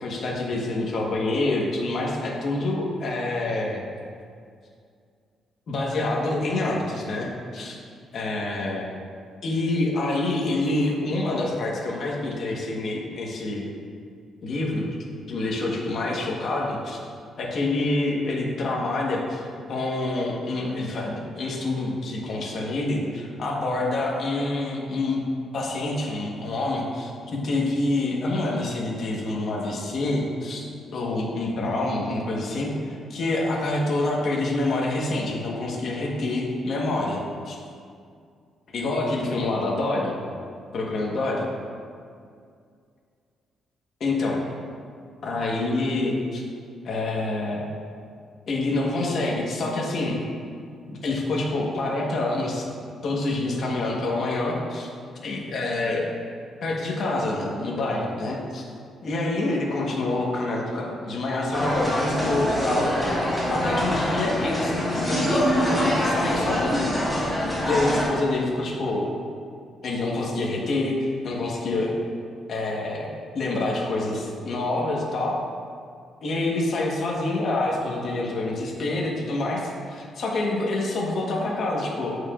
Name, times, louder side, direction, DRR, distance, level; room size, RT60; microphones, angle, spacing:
voice 1, 0.0-3.8 5.7-7.8 8.1-8.9 9.4-13.6 14.4-14.9 15.3-17.0 17.4-25.2 25.5-37.6 38.7-40.2 40.7-41.4 44.0-44.4 45.2-46.4 46.8-47.6 48.5-50.2 50.9-52.7 53.0-54.9 55.2-56.1 56.6-58.7 59.0-62.9 63.5-66.9 67.7-69.1 69.8-70.9 71.2-71.9 72.5-73.1 73.3-75.4 76.2-82.2, left 2 dB, 45° left, -3 dB, 1.2 m, -27 dB
sound 1, 61.5-68.0, equal, ahead, 1.5 m, -24 dB
14.5 x 4.9 x 2.5 m, 2.2 s
cardioid pair, 170°, 0 cm